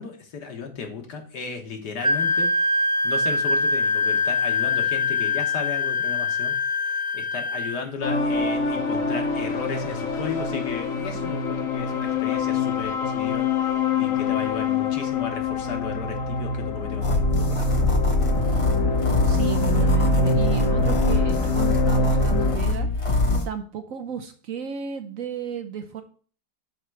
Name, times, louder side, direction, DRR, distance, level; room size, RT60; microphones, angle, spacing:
voice 1, 0.0-2.5 3.0-6.5 7.1-13.5 14.0-17.8, left 5 dB, 75° left, 4 dB, 1.8 m, -35 dB
Wind instrument woodwind instrument, 2.0-7.8, left 3 dB, 5° right, 0.6 m, -23 dB
sound 1, 8.0-22.6, left 4 dB, 60° left, 1.1 m, -25 dB
sound 2, 17.0-23.4, left 1 dB, 40° left, 0.4 m, -23 dB
voice 2, 19.2-23.2 23.4-26.0, right 7 dB, 65° right, 7 dB, 0.9 m, -33 dB
5.8 x 4.3 x 6.1 m, 0.42 s
omnidirectional pair, 1.8 m